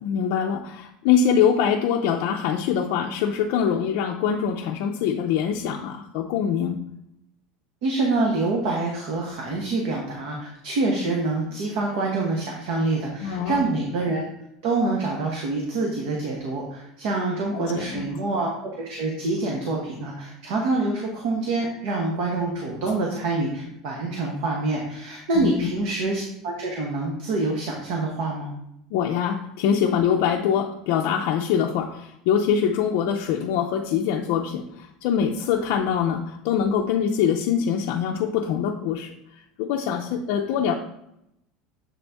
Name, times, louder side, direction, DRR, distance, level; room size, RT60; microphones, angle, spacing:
voice 1, 0.0-6.8 13.2-13.7 17.5-18.1 25.3-25.7 28.9-39.1 39.6-40.7, left 8 dB, 60° left, 0 dB, 0.5 m, -24 dB
voice 2, 7.8-14.3 14.6-28.5, right 2 dB, 55° right, -1 dB, 1.1 m, -26 dB
7.3 x 4.0 x 3.5 m, 0.80 s
cardioid pair, 170°, 0 cm